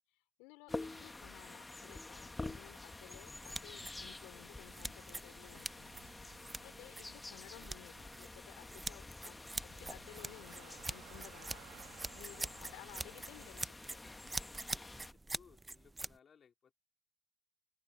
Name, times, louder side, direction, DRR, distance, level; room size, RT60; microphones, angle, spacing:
voice 1, 0.4-5.9 6.3-11.6 12.2-14.0, left 24 dB, 80° left, 4.5 m, -57 dB
sound 1, 0.7-15.1, left 2 dB, 10° left, 1.2 m, -49 dB
sound 2, 3.2-16.2, right 2 dB, 10° right, 0.5 m, -46 dB
Motor vehicle (road) / Engine starting, 4.9-13.5, right 17 dB, 70° right, 1.2 m, -61 dB
voice 2, 14.4-16.7, left 7 dB, 30° left, 3.3 m, -65 dB
open air
cardioid pair, 140°, 0 cm